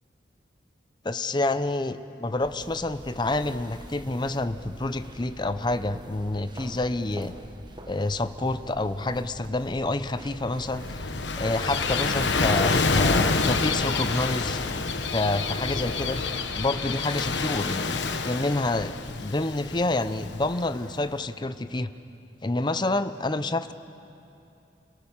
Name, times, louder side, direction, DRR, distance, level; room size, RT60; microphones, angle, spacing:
voice 1, 1.0-7.3 7.9-14.6 15.1-16.2 16.6-18.0 18.2-18.9 19.2-21.9 22.4-23.7, left 2 dB, 25° left, 11 dB, 0.7 m, -28 dB
sound 1, 2.4-16.7, right 1 dB, 25° right, 1.4 m, -45 dB
Gull seagull / Waves surf, 10.4-21.0, left 4 dB, 75° left, 1.1 m, -27 dB
29.5 x 18.0 x 7.3 m, 2.7 s
head